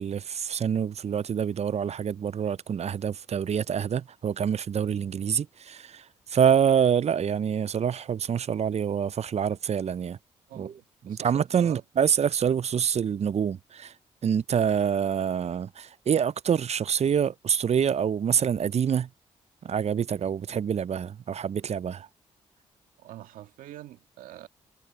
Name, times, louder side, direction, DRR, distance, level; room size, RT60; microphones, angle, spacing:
voice 1, 0.0-10.2 10.6-10.7 11.1-13.9 14.2-19.1 19.6-22.1, right 8 dB, 50° right, 0.6 m, -26 dB
voice 2, 10.5-11.3 11.6-11.8 23.0-24.5, right 13 dB, 80° right, 2.0 m, -45 dB
hypercardioid pair, 45°, 14 cm